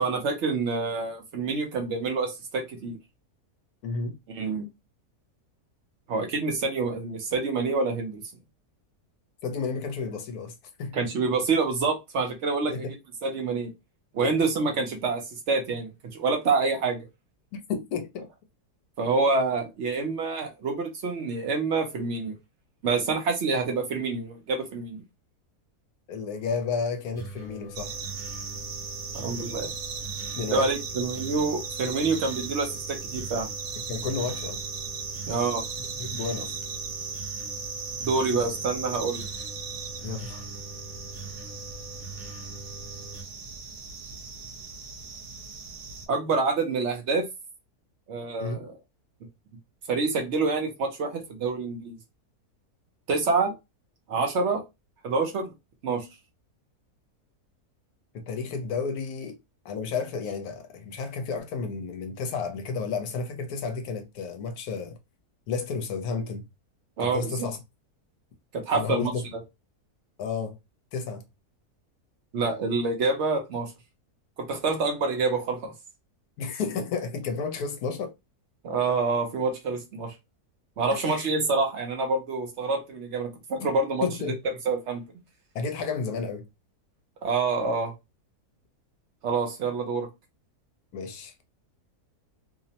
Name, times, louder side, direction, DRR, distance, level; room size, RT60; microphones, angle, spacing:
voice 1, 0.0-3.0 4.3-4.7 6.1-8.2 10.9-12.9 13.2-13.7 14.1-15.2 15.5-17.0 19.0-22.3 22.8-25.0 29.1-29.7 30.5-33.5 35.3-35.6 38.0-39.3 46.1-47.3 48.1-48.7 49.9-52.0 53.1-53.5 54.1-54.6 55.0-55.5 55.8-56.1 67.0-67.5 68.5-69.1 72.3-73.7 74.4-75.7 78.6-80.1 80.8-84.3 84.7-85.0 87.2-87.9 89.2-90.1, right 4 dB, 60° right, 0.7 m, -27 dB
voice 2, 3.8-4.2 9.4-10.5 10.8-10.9 12.6-12.9 14.2-14.4 17.5-18.3 26.1-28.0 30.4-30.7 33.9-34.6 36.0-36.5 40.0-40.5 48.4-48.6 58.1-59.4 59.6-65.0 65.5-66.4 67.0-67.6 68.7-69.2 70.2-70.5 70.9-71.2 76.4-78.1 80.9-81.3 83.6-83.7 84.0-84.4 85.5-86.5 90.9-91.4, left 5 dB, 75° left, 1.1 m, -32 dB
sound 1, 27.1-43.2, right 2 dB, 15° right, 0.7 m, -43 dB
sound 2, 27.7-46.1, right 5 dB, 80° right, 1.1 m, -37 dB
2.8 x 2.0 x 2.7 m
omnidirectional pair, 1.7 m